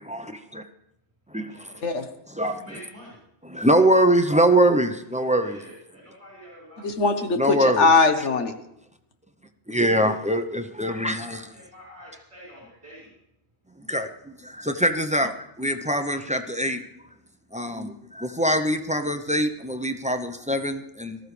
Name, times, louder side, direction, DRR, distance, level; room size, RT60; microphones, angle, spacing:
voice 1, 0.0-0.6 1.3-1.7 2.4-2.6 3.4-5.6 7.3-7.9 9.7-11.5 13.9-15.3 15.6-16.9 17.5-21.2, right 1 dB, 10° right, 7 dB, 0.5 m, -23 dB
voice 2, 1.4-1.9 2.5-3.2 5.4-6.9 10.8-13.2, equal, 25° right, -7 dB, 5.2 m, -47 dB
voice 3, 6.8-8.5, left 4 dB, 75° left, 7 dB, 1.5 m, -21 dB
18.5 x 13.5 x 3.3 m, 0.79 s
omnidirectional pair, 1.2 m